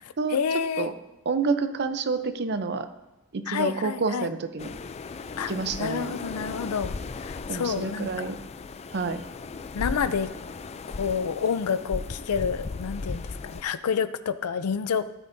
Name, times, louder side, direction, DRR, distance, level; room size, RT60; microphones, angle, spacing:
voice 1, 0.3-0.9 3.5-4.3 5.4-5.5 5.8-6.9 7.2-8.4 9.7-10.3 11.0-15.1, left 6 dB, 85° left, 13 dB, 0.5 m, -28 dB
voice 2, 1.3-2.9 3.3-4.7 5.5-6.2 7.5-8.4 8.9-9.2, right 4 dB, 50° right, 9 dB, 0.6 m, -28 dB
sound 1, 4.6-13.6, left 4 dB, 30° left, 0.4 m, -37 dB
14.5 x 9.2 x 2.7 m, 1.0 s
head